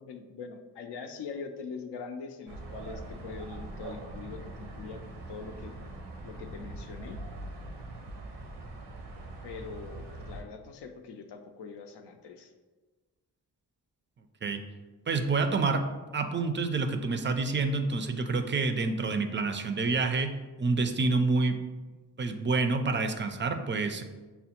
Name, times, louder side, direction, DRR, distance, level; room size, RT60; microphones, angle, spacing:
voice 1, 0.0-5.7 6.2-7.2 9.4-12.5, left 5 dB, 75° left, 6 dB, 0.5 m, -43 dB
sound 1, 2.5-10.4, right 2 dB, 85° right, 0.6 m, -42 dB
voice 2, 15.1-15.8 16.1-20.3 20.6-21.6 22.2-24.0, right 3 dB, 30° right, 7 dB, 0.3 m, -28 dB
5.4 x 2.0 x 2.8 m, 1.3 s
supercardioid pair, 45°, 41 cm